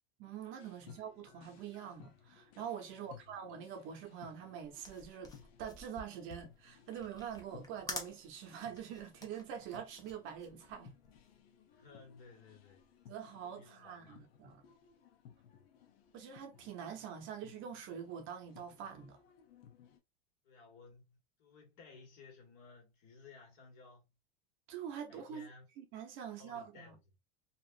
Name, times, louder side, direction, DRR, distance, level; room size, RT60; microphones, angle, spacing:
voice 1, 0.2-5.3 5.6-10.9 13.1-14.6 16.1-19.2 24.7-25.5 25.8-27.0, right 8 dB, 40° right, 0.7 m, -45 dB
sound 1, 0.6-20.0, left 8 dB, 85° left, 0.8 m, -61 dB
voice 2, 2.9-3.3 11.7-12.9 13.4-14.2 15.4-15.7 20.4-24.1 24.8-25.7 26.4-27.2, left 4 dB, 60° left, 1.7 m, -58 dB
sound 2, 4.7-11.3, left 2 dB, 10° left, 0.6 m, -49 dB
2.8 x 2.4 x 2.5 m
supercardioid pair, 145°, 30 cm